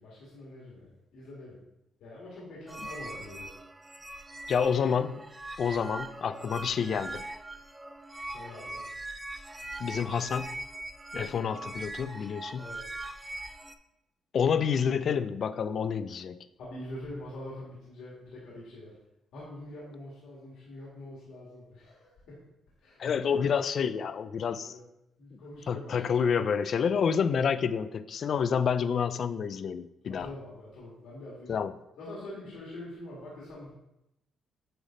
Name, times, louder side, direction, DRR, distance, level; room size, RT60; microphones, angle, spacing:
voice 1, 0.0-1.6 2.0-3.5 8.3-8.8 12.6-12.8 16.6-18.9 19.3-22.4 22.8-23.0 23.3-23.4 24.6-24.8 25.2-26.5 28.3-28.5 30.1-31.5 32.0-33.7, left 1 dB, 85° left, -5 dB, 2.0 m, -44 dB
sound 1, 2.7-13.7, right 2 dB, 15° right, 0.5 m, -41 dB
voice 2, 4.5-5.3 5.6-7.2 9.8-10.6 11.1-12.7 14.3-16.5 23.0-24.8 25.7-30.3 31.5-31.7, left 7 dB, 55° left, 13 dB, 0.4 m, -28 dB
9.1 x 3.4 x 3.8 m, 0.87 s
cardioid pair, 90°, 0 cm